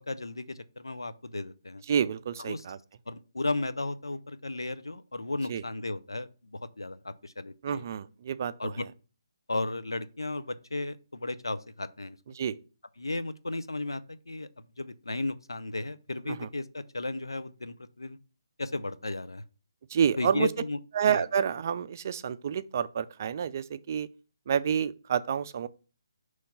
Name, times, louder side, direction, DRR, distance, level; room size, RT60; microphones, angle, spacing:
voice 1, 0.0-1.8 2.4-2.6 3.1-7.8 8.6-8.8 9.5-12.2 13.0-14.5 14.8-18.2 18.6-19.4 20.2-20.8 21.1-21.2, left 2 dB, 90° left, 0.5 m, -34 dB
voice 2, 1.9-2.8 5.5-5.6 7.6-8.7 12.3-12.6 16.3-16.5 19.9-20.5 20.9-24.1 24.5-25.7, right 8 dB, 45° right, 0.4 m, -29 dB
5.7 x 3.2 x 5.3 m
figure-of-eight pair, 145°, 2 cm